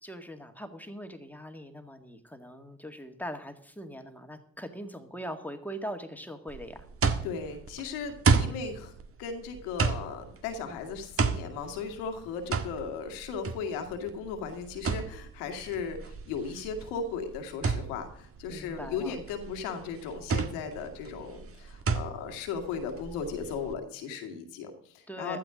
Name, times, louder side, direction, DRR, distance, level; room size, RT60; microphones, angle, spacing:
voice 1, 0.0-6.9 18.5-19.1 25.1-25.4, equal, 5° left, 6 dB, 2.0 m, -41 dB
sound 1, 6.5-23.7, right 5 dB, 40° right, 1.5 m, -32 dB
voice 2, 7.2-8.9 9.2-25.4, left 5 dB, 75° left, 5 dB, 2.1 m, -36 dB
15.0 x 12.5 x 3.8 m, 0.67 s
hypercardioid pair, 50°, 35 cm